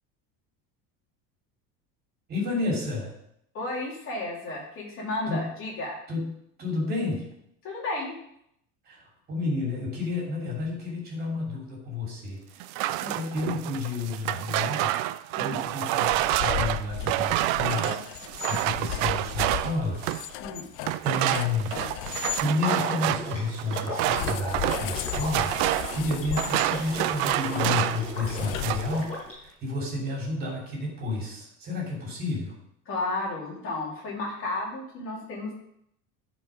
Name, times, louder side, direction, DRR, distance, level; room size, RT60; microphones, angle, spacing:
voice 1, 2.3-3.1 5.3-5.5 6.1-6.3 6.6-7.2 8.8-12.7 13.1-14.9 15.4-20.0 21.0-21.8 22.4-25.6 25.9-32.6, left 2 dB, 25° right, -2 dB, 3.1 m, -31 dB
voice 2, 3.5-6.0 7.6-8.1 13.0-13.2 15.4-15.6 20.4-20.7 32.9-35.5, left 2 dB, 35° left, -3 dB, 2.7 m, -33 dB
sound 1, 12.6-20.3 20.8-28.1 28.4-29.0, right 15 dB, 80° right, 0.5 m, -28 dB
sound 2, 16.1-22.4 24.0-29.3, left 15 dB, 70° left, 0.6 m, -36 dB
Water / Liquid, 22.6-29.3, left 1 dB, 20° left, 4.1 m, -37 dB
11.0 x 4.8 x 5.1 m, 0.74 s
cardioid pair, 175°, 36 cm